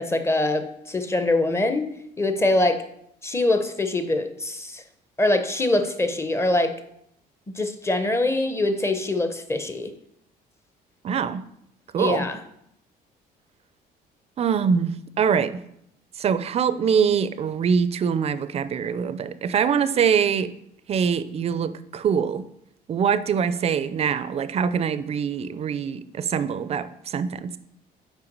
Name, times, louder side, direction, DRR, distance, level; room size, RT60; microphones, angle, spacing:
voice 1, 0.0-1.8 2.2-2.8 3.2-4.8 5.2-6.7 7.6-9.9 12.0-12.4, left 2 dB, 15° left, 8 dB, 0.7 m, -23 dB
voice 2, 11.0-11.4 11.9-12.2 14.4-15.6 16.2-20.5 20.9-22.4 22.9-27.5, right 7 dB, 40° right, 14 dB, 0.4 m, -24 dB
5.7 x 4.5 x 5.3 m, 0.76 s
cardioid pair, 110°, 17 cm